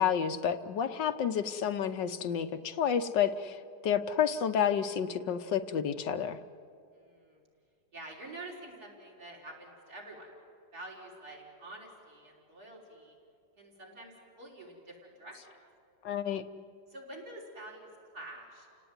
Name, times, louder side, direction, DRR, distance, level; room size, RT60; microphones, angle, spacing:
voice 1, 0.0-6.4 16.0-16.4, left 8 dB, 75° left, 9 dB, 1.5 m, -30 dB
voice 2, 6.9-7.4 7.9-10.3 10.7-13.2 13.6-15.5 16.9-17.9 18.1-18.7, right 2 dB, 55° right, 0 dB, 5.7 m, -47 dB
30.0 x 18.0 x 9.5 m, 2.4 s
omnidirectional pair, 2.0 m